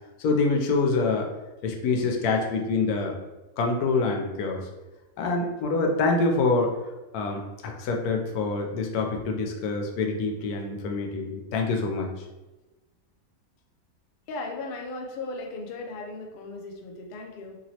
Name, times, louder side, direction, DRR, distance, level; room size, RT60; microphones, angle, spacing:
voice 1, 0.2-1.3 1.6-3.2 3.6-4.7 5.2-6.7 7.1-12.1, left 3 dB, 90° left, 2 dB, 1.1 m, -26 dB
voice 2, 14.3-17.6, left 3 dB, 65° left, 1 dB, 0.5 m, -36 dB
2.9 x 2.9 x 2.8 m, 1.1 s
omnidirectional pair, 1.5 m